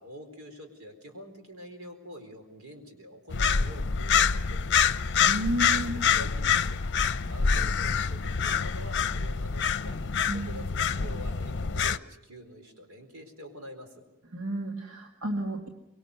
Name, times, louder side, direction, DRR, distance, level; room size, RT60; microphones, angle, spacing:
voice 1, 0.0-5.0 5.7-6.8 7.2-14.0, equal, 70° right, 5 dB, 4.5 m, -46 dB
sound 1, 3.3-12.0, left 6 dB, 55° left, 0.7 m, -26 dB
voice 2, 5.2-5.9 10.3-10.6 14.3-15.7, right 1 dB, 90° right, 2 dB, 2.0 m, -32 dB
24.5 x 23.0 x 6.9 m, 0.98 s
head